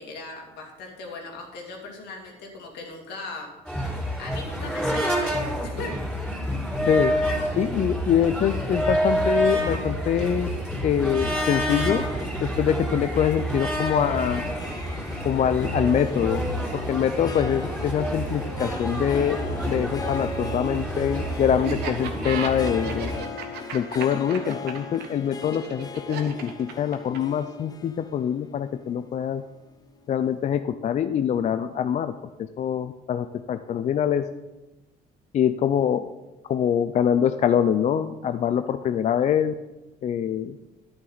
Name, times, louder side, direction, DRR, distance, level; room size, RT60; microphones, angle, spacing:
voice 1, 0.0-3.5 4.2-5.9, left 3 dB, 80° left, 1 dB, 2.7 m, -38 dB
sound 1, 3.7-23.2, equal, 5° left, 3.6 m, -28 dB
voice 2, 7.6-10.5 10.8-12.0 12.4-14.4 15.2-19.4 19.6-23.1 23.7-29.4 30.1-32.1 32.6-34.2 35.3-36.1 36.5-39.5 40.0-40.6, left 9 dB, 45° left, 10 dB, 0.4 m, -24 dB
Harp, 11.8-30.2, left 4 dB, 20° left, 0.8 m, -40 dB
Laughter, 21.6-27.4, right 6 dB, 75° right, 1.4 m, -35 dB
11.0 x 9.7 x 4.0 m, 1.1 s
cardioid pair, 110°, 17 cm